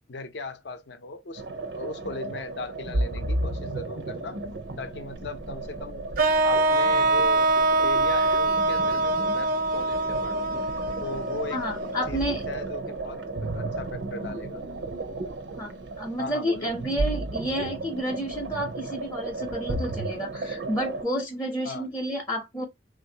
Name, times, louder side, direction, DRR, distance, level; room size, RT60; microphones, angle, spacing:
voice 1, 0.1-1.4 1.7-4.4 4.8-6.0 6.4-7.5 7.8-10.5 11.0-11.7 12.1-12.2 12.5-14.6 16.2-16.7 21.6-21.9, left 3 dB, 65° left, 0.5 m, -38 dB
sound 1, 1.4-21.0, right 2 dB, 90° right, 0.7 m, -34 dB
sound 2, 6.2-12.2, right 2 dB, 50° right, 0.4 m, -24 dB
voice 2, 11.5-12.5 15.6-15.7 16.0-22.7, equal, 15° left, 0.5 m, -30 dB
3.3 x 2.5 x 2.7 m
head